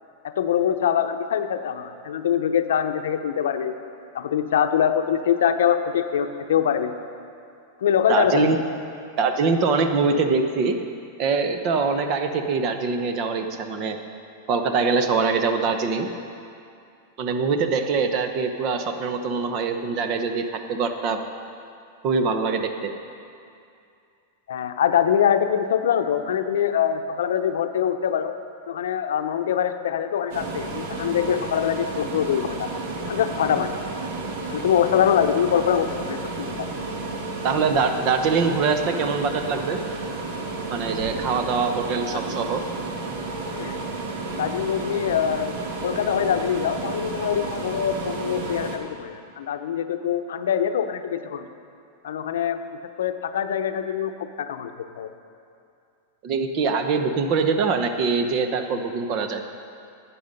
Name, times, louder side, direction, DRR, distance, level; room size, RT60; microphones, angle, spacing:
voice 1, 0.4-3.8 4.1-7.0 7.8-8.6 24.5-28.3 28.7-32.7 33.1-33.7 34.5-36.7 42.1-42.5 43.5-43.8 44.3-45.6 45.8-51.5 52.0-52.6 53.0-54.7 55.0-55.1, left 9 dB, 90° left, 8 dB, 0.6 m, -24 dB
voice 2, 8.1-8.6 9.2-10.8 11.2-14.0 14.5-16.1 17.2-21.2 22.0-22.9 37.4-39.8 40.7-42.6 56.2-59.4, right 4 dB, 40° right, 7 dB, 0.8 m, -23 dB
sound 1, 30.3-48.8, right 3 dB, 65° right, 1.5 m, -32 dB
11.5 x 8.5 x 5.3 m, 2.5 s
supercardioid pair, 150°, 0 cm